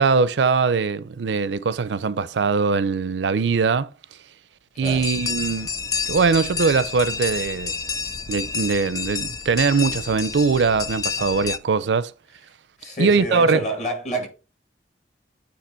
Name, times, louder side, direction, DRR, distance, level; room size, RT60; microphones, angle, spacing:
voice 1, 0.0-3.9 4.8-5.7 6.1-7.7 8.3-12.1 13.0-13.6, right 4 dB, 85° right, 0.5 m, -21 dB
voice 2, 4.7-5.1 12.8-14.3, equal, 45° left, 2.2 m, -28 dB
sound 1, 4.8-11.6, left 5 dB, 20° left, 0.3 m, -29 dB
8.7 x 2.9 x 4.4 m
head